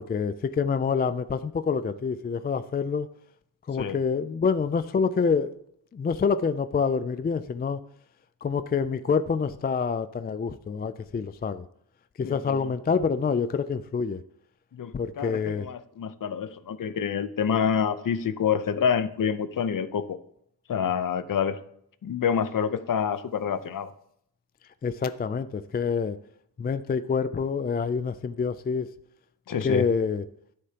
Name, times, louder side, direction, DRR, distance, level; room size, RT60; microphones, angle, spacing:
voice 1, 0.0-3.1 3.7-5.5 5.9-7.8 8.4-11.6 12.2-14.2 14.9-15.7 24.8-26.2 26.6-28.9 29.6-30.2, left 5 dB, 25° left, 12 dB, 0.3 m, -27 dB
voice 2, 12.2-12.7 14.7-20.2 20.7-21.6 22.0-23.9 29.5-29.9, left 7 dB, 55° left, 13 dB, 0.7 m, -27 dB
11.0 x 9.9 x 2.9 m, 0.70 s
wide cardioid pair, 110°, 41 cm